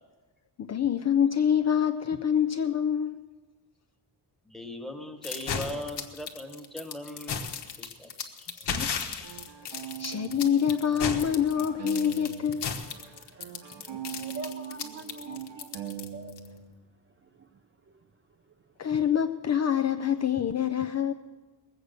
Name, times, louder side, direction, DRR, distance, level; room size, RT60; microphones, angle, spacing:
voice 1, 0.6-3.3 8.5-9.1 9.6-12.7 18.8-21.1, left 8 dB, 40° left, 7 dB, 0.4 m, -26 dB
voice 2, 4.5-7.5 7.8-8.5, left 1 dB, ahead, 3 dB, 1.2 m, -39 dB
sound 1, 5.2-16.5, left 6 dB, 70° left, 1.3 m, -35 dB
sound 2, 8.7-12.6 12.9-16.7, right 10 dB, 80° right, 1.4 m, -41 dB
voice 3, 14.1-16.3, right 2 dB, 30° right, 6 dB, 0.5 m, -43 dB
19.5 x 7.9 x 6.6 m, 1.3 s
wide cardioid pair, 160°, 42 cm